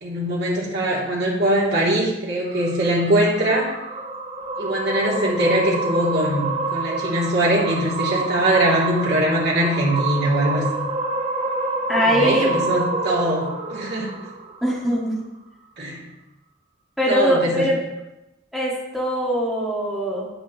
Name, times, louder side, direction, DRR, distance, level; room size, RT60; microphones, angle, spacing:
voice 1, 0.0-3.7 4.6-10.7 12.0-14.1 15.8-16.0 17.1-17.7, right 1 dB, 55° right, -4 dB, 2.5 m, -22 dB
sound 1, 2.4-14.9, right 3 dB, 30° right, 0.7 m, -28 dB
voice 2, 11.9-12.5 14.6-15.1 17.0-17.8 18.5-20.3, equal, ahead, -5 dB, 1.7 m, -22 dB
10.0 x 8.1 x 3.0 m, 0.96 s
head